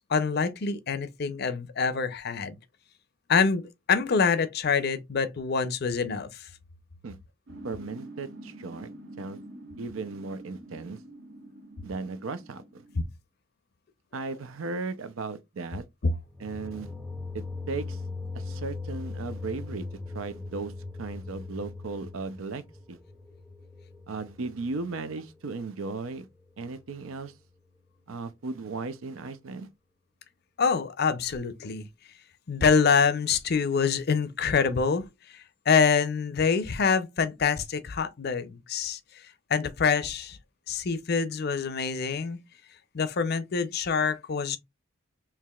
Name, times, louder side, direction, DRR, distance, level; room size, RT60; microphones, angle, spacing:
voice 1, 0.0-2.6 3.3-6.3 16.0-16.1 30.6-31.9 32.5-35.1 35.7-39.0 39.5-40.4 40.7-42.4 42.9-44.6, left 5 dB, 55° left, 0.5 m, -25 dB
sound 1, 7.5-13.1, right 1 dB, 70° right, 1.5 m, -46 dB
voice 2, 7.6-8.9 9.2-9.4 9.8-11.0 11.8-12.8 14.1-15.8 16.4-16.9 17.3-18.0 18.3-19.8 20.1-20.7 21.0-22.6 22.9-23.0 24.1-26.3 26.6-27.3 28.1-29.7, right 4 dB, 85° right, 0.6 m, -36 dB
sound 2, 16.3-25.2, left 3 dB, 5° left, 0.4 m, -39 dB
4.6 x 2.9 x 2.3 m
head